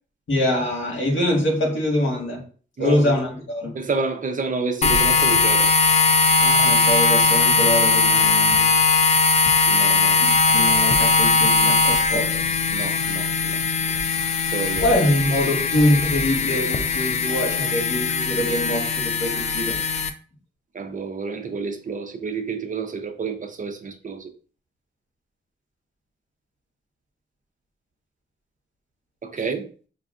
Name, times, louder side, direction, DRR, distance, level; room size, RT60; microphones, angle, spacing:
voice 1, 0.3-2.5 2.8-3.8 6.4-8.8 10.2-12.6 14.8-19.8, left 1 dB, 80° left, 1.6 m, -24 dB
voice 2, 2.8-3.1 3.7-5.7 9.7-10.3 12.1-12.3 12.7-13.6 14.5-14.9 20.7-24.3 29.2-29.7, right 4 dB, 40° right, 0.6 m, -29 dB
sound 1, 4.8-20.1, left 4 dB, 35° left, 0.4 m, -19 dB
5.3 x 2.4 x 2.4 m
wide cardioid pair, 85°, 20 cm